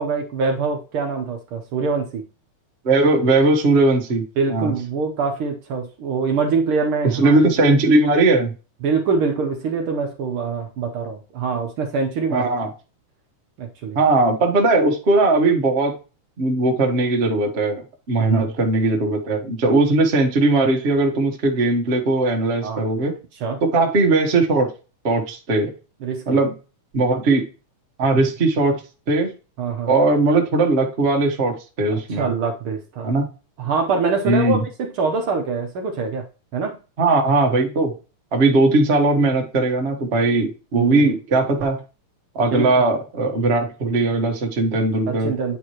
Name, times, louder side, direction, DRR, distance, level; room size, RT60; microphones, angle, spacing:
voice 1, 0.0-2.2 4.4-7.3 8.8-12.5 13.6-14.0 18.3-18.5 22.6-22.9 23.4-23.6 26.0-26.4 29.6-29.9 31.9-33.1 33.6-36.2 36.5-36.8 40.7-41.1 42.5-42.8 45.1-45.6, right 5 dB, 70° right, 2 dB, 1.3 m, -24 dB
voice 2, 2.8-4.2 4.5-4.7 7.1-8.5 12.3-12.7 13.9-16.0 16.4-17.8 18.1-23.1 23.6-24.7 25.0-25.7 26.3-26.5 26.9-27.4 28.0-28.8 29.1-29.3 29.9-32.3 33.0-33.3 34.2-34.6 37.0-37.9 38.3-41.8 42.3-45.3, right 2 dB, 85° right, 2 dB, 0.5 m, -19 dB
9.2 x 4.7 x 2.9 m, 0.33 s
omnidirectional pair, 3.4 m